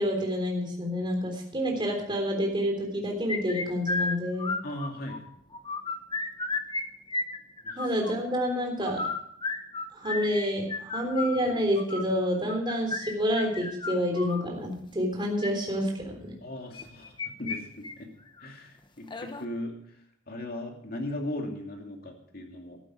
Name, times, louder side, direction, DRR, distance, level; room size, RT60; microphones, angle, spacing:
voice 1, 0.0-4.5 7.8-9.0 9.9-16.3, equal, 25° right, 2 dB, 3.5 m, -28 dB
sound 1, 3.3-5.2 5.5-6.8 7.1-8.1 8.8-14.4 15.2-15.5 16.7-17.6 17.8-17.9 18.4-18.5 19.1-19.5, left 3 dB, 25° left, 1.1 m, -33 dB
voice 2, 4.6-5.2 7.6-7.8 16.4-18.1 18.4-19.7 20.3-22.8, left 1 dB, 50° left, 2 dB, 2.6 m, -37 dB
14.0 x 11.5 x 4.9 m, 0.70 s
head